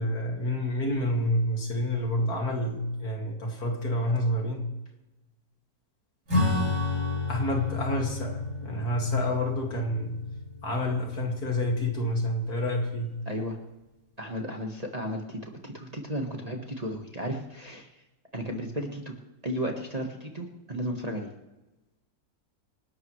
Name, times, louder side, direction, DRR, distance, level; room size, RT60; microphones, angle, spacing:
voice 1, 0.0-4.6 7.3-10.3 10.6-13.2, left 1 dB, 60° left, 1 dB, 2.9 m, -28 dB
Acoustic guitar / Strum, 6.3-12.2, left 3 dB, 70° right, 7.2 m, -31 dB
voice 2, 13.2-13.6 14.2-17.9 18.3-19.1 19.4-21.3, equal, 25° right, 1 dB, 1.6 m, -34 dB
27.0 x 12.0 x 3.3 m, 1.0 s
omnidirectional pair, 1.8 m